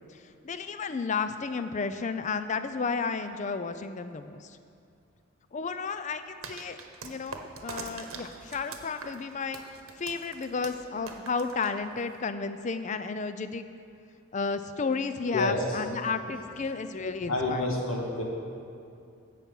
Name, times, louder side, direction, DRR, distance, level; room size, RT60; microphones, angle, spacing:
voice 1, 0.4-4.6 5.5-6.8 7.0-9.6 10.0-13.7 14.3-17.7, left 4 dB, 35° left, 10 dB, 0.4 m, -32 dB
sound 1, 6.4-12.2, right 4 dB, 75° right, 1.0 m, -43 dB
voice 2, 15.3-15.8 17.2-18.2, left 2 dB, 70° left, -2 dB, 1.9 m, -29 dB
15.5 x 5.9 x 5.4 m, 2.5 s
head